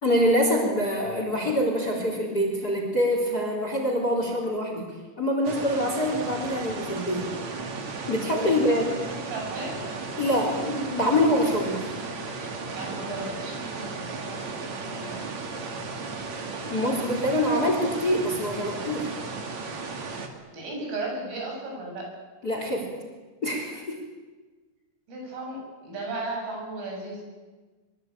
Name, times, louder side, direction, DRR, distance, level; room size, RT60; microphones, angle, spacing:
voice 1, 0.0-4.9 5.2-7.3 8.1-8.8 10.2-11.9 16.6-19.1 22.4-22.9 23.4-24.0, equal, 20° left, 2 dB, 3.1 m, -25 dB
sound 1, 5.4-20.3, right 4 dB, 45° right, 3.0 m, -35 dB
voice 2, 8.4-8.9 9.3-9.8 12.7-15.2 20.5-22.0 25.1-27.2, right 2 dB, 85° right, 0 dB, 10.0 m, -35 dB
24.5 x 23.5 x 9.0 m, 1.3 s
omnidirectional pair, 5.6 m